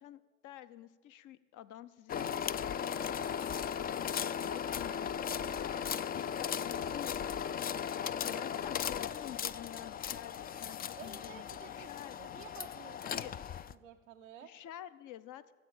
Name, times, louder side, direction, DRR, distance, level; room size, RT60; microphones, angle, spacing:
voice 1, 0.0-5.7 6.1-12.4 13.0-13.3 14.4-15.5, left 12 dB, 55° left, 14 dB, 0.7 m, -49 dB
sound 1, 2.1-13.7, left 8 dB, 25° left, 0.4 m, -37 dB
voice 2, 11.0-13.3 13.7-14.5, right 9 dB, 90° right, 4 dB, 0.5 m, -53 dB
16.0 x 7.7 x 7.1 m, 1.4 s
figure-of-eight pair, 50°, 38 cm